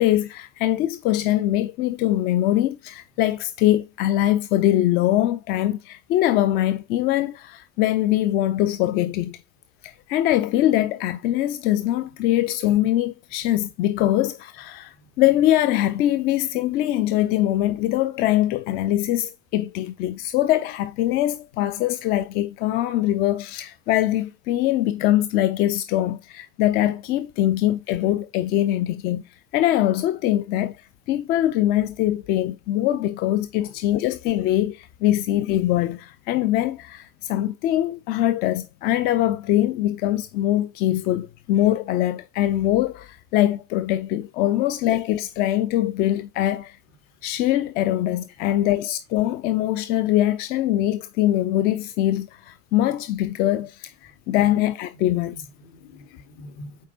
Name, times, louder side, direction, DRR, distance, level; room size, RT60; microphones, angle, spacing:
voice 1, 0.0-9.4 9.8-29.2 29.5-30.8 31.1-46.8 47.2-55.3, left 13 dB, 25° left, 0.3 m, -22 dB
voice 2, 55.3-56.9, left 1 dB, 45° left, 1.9 m, -44 dB
8.1 x 4.6 x 2.6 m
figure-of-eight pair, 80°, 38 cm